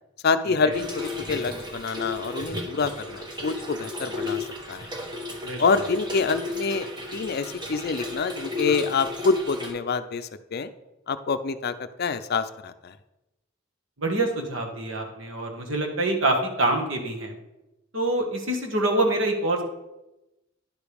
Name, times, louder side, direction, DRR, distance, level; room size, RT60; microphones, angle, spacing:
voice 1, 0.2-4.9 5.6-6.9 7.1-10.7 11.1-12.9, left 4 dB, 50° left, 11 dB, 0.5 m, -26 dB
Trickle dribble / Fill (with liquid), 0.7-9.7, left 2 dB, 20° right, 1.1 m, -34 dB
voice 2, 14.0-17.3 17.9-19.6, right 2 dB, 70° right, 2 dB, 1.5 m, -26 dB
10.5 x 5.0 x 5.1 m, 0.97 s
head